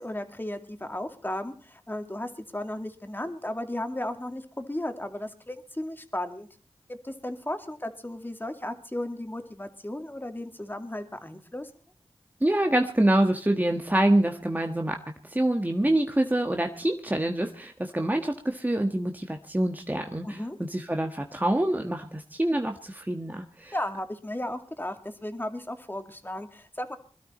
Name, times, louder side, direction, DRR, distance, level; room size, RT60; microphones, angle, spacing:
voice 1, 0.0-6.5 6.9-11.7 20.2-20.6 23.7-27.0, left 1 dB, 20° left, 6 dB, 2.3 m, -35 dB
voice 2, 12.4-15.0 15.2-20.4 20.7-23.7, right 1 dB, 15° right, 4 dB, 1.5 m, -26 dB
21.5 x 12.5 x 4.3 m, 0.40 s
cardioid pair, 40°, 11 cm